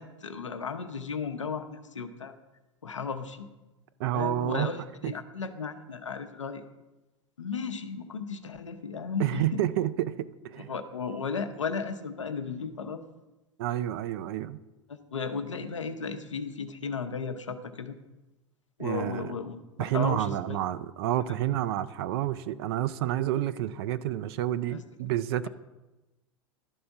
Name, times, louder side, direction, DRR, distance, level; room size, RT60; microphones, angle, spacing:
voice 1, 0.0-2.4 2.8-3.5 4.1-6.6 7.4-9.7 10.6-13.0 14.9-18.0 18.8-20.6 21.3-21.4 24.7-24.8, left 5 dB, 80° left, 0.7 m, -35 dB
voice 2, 4.0-4.7 5.0-5.1 9.2-10.7 13.6-14.6 18.8-19.3 19.8-25.5, right 13 dB, 55° right, 0.4 m, -29 dB
11.5 x 4.2 x 5.8 m
figure-of-eight pair, 85°, 15 cm